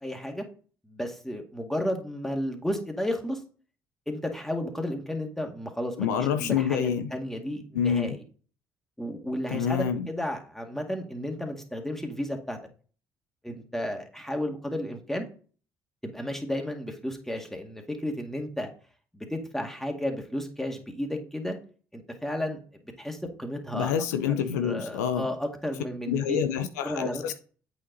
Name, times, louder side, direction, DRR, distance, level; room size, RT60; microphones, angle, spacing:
voice 1, 0.0-0.4 0.8-3.4 4.1-8.2 9.0-12.6 13.4-15.3 16.0-18.7 19.1-21.6 21.9-22.6 23.0-23.9 24.3-26.4 26.8-27.3, left 1 dB, 5° left, 3 dB, 2.1 m, -33 dB
voice 2, 6.0-7.1 7.7-8.2 9.5-10.1 23.7-25.3 26.1-27.3, left 8 dB, 85° left, 10 dB, 0.6 m, -27 dB
8.3 x 5.0 x 4.0 m, 0.39 s
hypercardioid pair, 55°, 9 cm